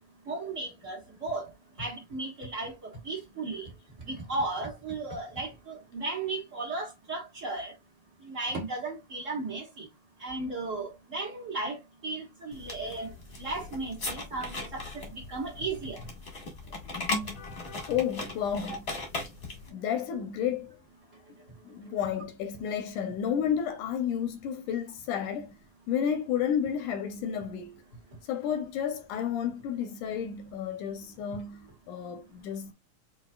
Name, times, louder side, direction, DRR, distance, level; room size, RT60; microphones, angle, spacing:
voice 1, 0.3-1.5 1.8-3.7 4.1-7.7 8.2-9.9 10.2-13.1 13.4-16.0, right 3 dB, 80° right, 0.6 m, -35 dB
sound 1, 12.5-19.7, left 2 dB, 50° left, 0.7 m, -38 dB
voice 2, 17.2-18.9 19.7-20.8 21.6-25.6 25.9-27.8 28.2-32.7, left 8 dB, 80° left, 1.9 m, -32 dB
7.6 x 2.7 x 2.3 m
omnidirectional pair, 4.0 m